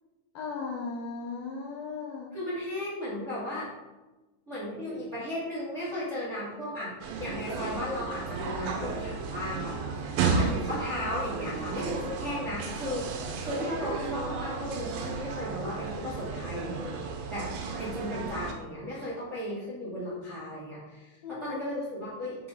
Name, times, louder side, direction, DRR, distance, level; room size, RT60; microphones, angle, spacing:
voice 1, 0.3-2.3 21.2-21.7, left 4 dB, 70° left, -3 dB, 2.3 m, -37 dB
voice 2, 2.3-3.7 4.5-6.9 7.2-16.8 17.3-17.5 17.8-22.4, left 1 dB, 25° right, -9 dB, 1.7 m, -35 dB
sound 1, 7.0-18.5, right 4 dB, 75° right, 3.1 m, -33 dB
7.7 x 6.6 x 3.9 m, 1.1 s
omnidirectional pair, 5.4 m